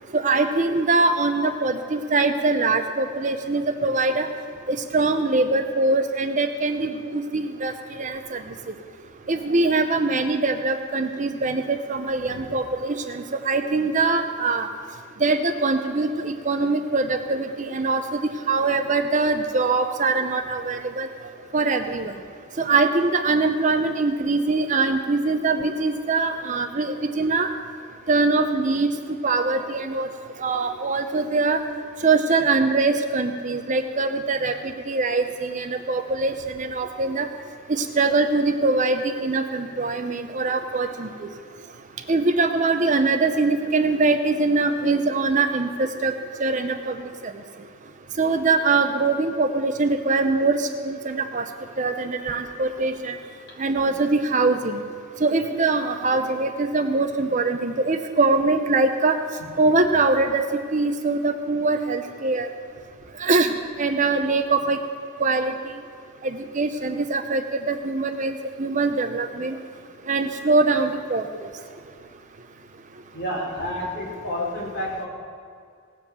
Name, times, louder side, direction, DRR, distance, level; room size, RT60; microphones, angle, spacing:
voice 1, 0.1-4.3 4.7-8.4 9.3-14.7 15.2-18.2 18.5-21.1 21.5-22.1 22.6-27.5 28.1-28.9 29.2-30.1 30.4-31.6 32.0-34.5 34.9-37.3 37.7-41.1 42.1-46.1 46.4-47.0 48.2-51.4 51.8-53.1 53.6-54.8 55.2-59.2 59.6-60.4 60.7-62.5 63.2-63.5 63.8-64.8 65.2-65.5 66.2-68.3 68.6-69.5 70.1-71.2, right 3 dB, 35° right, 7 dB, 0.6 m, -22 dB
voice 2, 73.1-75.1, left 1 dB, 50° left, -5 dB, 4.3 m, -30 dB
18.0 x 7.6 x 6.8 m, 2.2 s
head